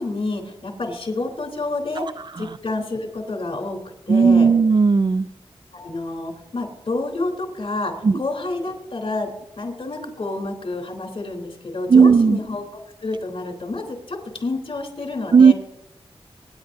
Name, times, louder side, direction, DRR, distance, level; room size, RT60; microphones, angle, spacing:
voice 1, 0.0-2.0 2.4-3.8 4.1-4.5 5.7-9.3 9.6-12.6 13.0-15.5, left 2 dB, 60° left, 2 dB, 3.3 m, -28 dB
voice 2, 4.1-5.3 8.0-8.2 11.9-12.4 15.3-15.5, right 5 dB, 45° right, 15 dB, 0.4 m, -14 dB
26.5 x 10.5 x 2.7 m, 0.85 s
wide cardioid pair, 80°, 11 cm